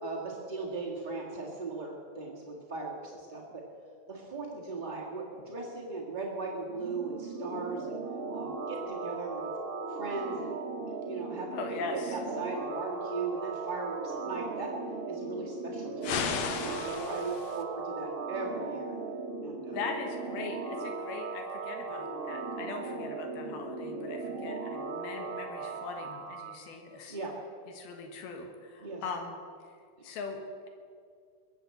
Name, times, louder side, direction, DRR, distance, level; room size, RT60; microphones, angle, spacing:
voice 1, 0.0-3.6 4.1-8.0 8.3-9.5 9.9-10.6 11.1-11.6 11.9-14.7 15.1-16.3 16.6-18.9 19.4-19.8 27.1-27.3 28.8-29.0, right 3 dB, 35° right, -3 dB, 0.7 m, -38 dB
sound 1, 6.7-26.6, right 3 dB, 65° right, 1.4 m, -38 dB
voice 2, 11.5-12.2 16.9-17.1 19.7-27.2 27.7-29.4 30.0-30.4, left 4 dB, 85° left, 4 dB, 3.3 m, -40 dB
sound 2, 16.0-17.6, left 7 dB, 70° left, 1.7 m, -34 dB
22.0 x 8.1 x 7.7 m, 2.2 s
omnidirectional pair, 4.3 m